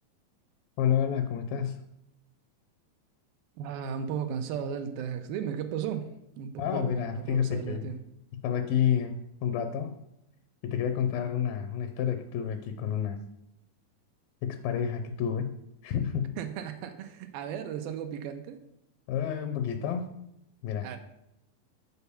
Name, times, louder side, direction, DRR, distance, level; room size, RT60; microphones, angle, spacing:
voice 1, 0.8-1.9 6.6-7.9 8.4-10.0 10.6-13.2 14.4-16.4 19.1-20.1 20.6-20.9, left 8 dB, 80° left, 8 dB, 2.3 m, -29 dB
voice 2, 3.6-6.1 6.4-8.0 16.4-18.6 20.8-21.0, right 8 dB, 85° right, 7 dB, 2.4 m, -35 dB
6.9 x 4.5 x 6.8 m, 0.82 s
omnidirectional pair, 4.2 m